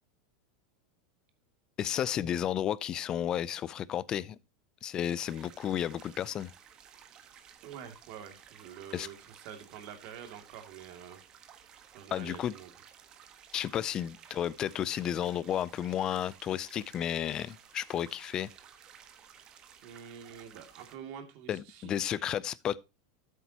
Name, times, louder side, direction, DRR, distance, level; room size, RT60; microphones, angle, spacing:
voice 1, 1.8-4.4 4.8-6.5 8.9-9.1 12.1-12.5 13.5-18.5 21.5-22.8, left 10 dB, 30° left, 0.5 m, -32 dB
sound 1, 5.1-20.9, right 8 dB, 30° right, 1.5 m, -55 dB
voice 2, 7.6-11.2 11.9-12.7 19.8-22.3, right 8 dB, 55° right, 2.5 m, -47 dB
12.5 x 8.2 x 2.9 m
supercardioid pair, 140°, 2 cm